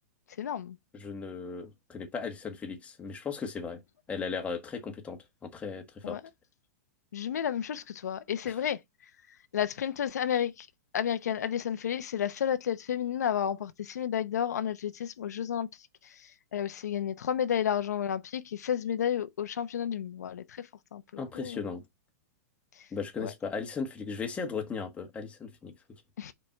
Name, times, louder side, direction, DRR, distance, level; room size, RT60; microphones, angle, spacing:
voice 1, 0.4-0.8 6.0-6.2 7.1-8.8 9.5-10.7 10.9-15.7 16.0-21.0 21.3-21.6 22.8-22.9 23.2-23.3 26.2-26.3, left 9 dB, 85° left, 0.8 m, -31 dB
voice 2, 0.9-3.8 4.1-6.2 8.4-8.6 21.2-21.8 22.9-25.7, left 5 dB, 15° left, 1.4 m, -37 dB
5.3 x 4.4 x 4.5 m
hypercardioid pair, 140°, 9 cm